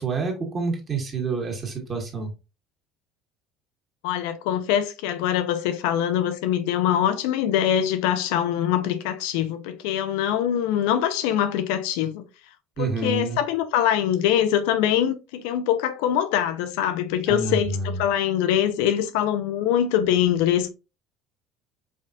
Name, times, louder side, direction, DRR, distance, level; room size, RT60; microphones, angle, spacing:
voice 1, 0.0-2.3 12.8-13.4 17.3-18.0, right 3 dB, 30° right, 1.6 m, -28 dB
voice 2, 4.0-12.2 12.8-20.7, left 10 dB, 85° left, 0.7 m, -23 dB
5.1 x 3.6 x 2.6 m
cardioid pair, 135°, 0 cm